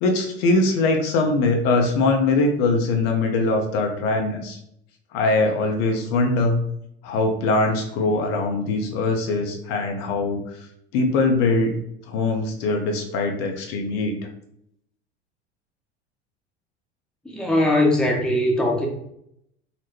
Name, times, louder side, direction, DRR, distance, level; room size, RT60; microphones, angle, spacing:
voice 1, 0.0-4.6 5.1-6.6 7.0-10.4 10.9-11.8 12.1-14.2, left 3 dB, 60° left, 3 dB, 0.7 m, -22 dB
voice 2, 17.2-18.9, left 1 dB, ahead, -1 dB, 0.7 m, -20 dB
4.0 x 2.1 x 2.9 m, 0.74 s
hypercardioid pair, 75°, 34 cm